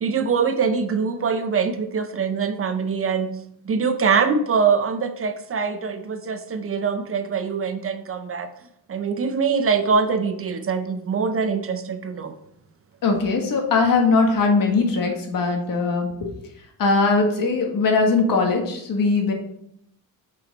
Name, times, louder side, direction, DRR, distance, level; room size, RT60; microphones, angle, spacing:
voice 1, 0.0-3.3 3.7-8.5 8.9-12.3, right 5 dB, 40° right, 9 dB, 0.5 m, -23 dB
voice 2, 13.0-16.3 16.8-19.3, left 3 dB, 65° left, 3 dB, 1.4 m, -20 dB
6.1 x 5.7 x 4.1 m, 0.74 s
wide cardioid pair, 175°, 36 cm